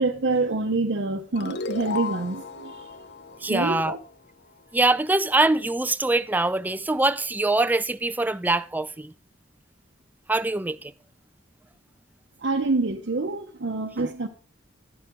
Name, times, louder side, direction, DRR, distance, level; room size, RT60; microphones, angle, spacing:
voice 1, 0.0-2.9 3.4-4.0 12.4-14.3, right 3 dB, 70° right, 0.8 m, -26 dB
sound 1, 1.4-4.6, left 4 dB, 60° left, 0.6 m, -35 dB
voice 2, 3.4-4.0 4.7-9.1 10.3-10.9, right 2 dB, 10° right, 0.4 m, -23 dB
11.0 x 9.2 x 3.7 m
head